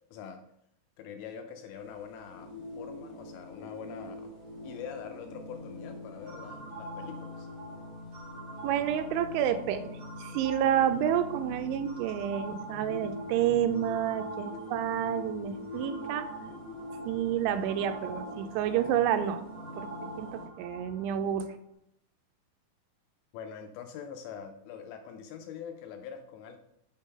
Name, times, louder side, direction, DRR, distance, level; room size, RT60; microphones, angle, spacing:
voice 1, 0.1-0.4 1.0-4.3 4.6-7.5 23.3-26.6, left 7 dB, 85° left, 6 dB, 2.6 m, -44 dB
sound 1, 1.7-20.5, left 1 dB, 60° left, 1.6 m, -43 dB
sound 2, 6.3-21.0, right 2 dB, 45° right, 2.3 m, -46 dB
voice 2, 8.6-9.9 10.2-16.3 17.1-19.4 19.8-19.9 20.2-21.5, right 10 dB, 85° right, 9 dB, 2.9 m, -29 dB
6.7 x 3.7 x 5.3 m, 0.78 s
omnidirectional pair, 5.4 m